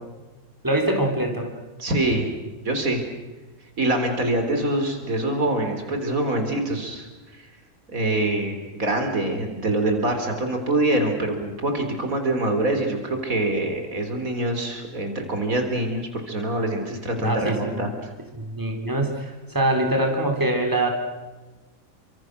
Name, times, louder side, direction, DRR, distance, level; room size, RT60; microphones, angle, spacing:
voice 1, 0.6-1.5 17.2-17.9 18.3-20.9, right 1 dB, 15° right, 3 dB, 3.7 m, -24 dB
voice 2, 1.8-2.3 2.6-3.0 3.8-7.1 7.3-7.5 7.9-18.1, right 1 dB, 80° right, 5 dB, 4.0 m, -25 dB
29.5 x 25.0 x 6.5 m, 1.2 s
omnidirectional pair, 1.5 m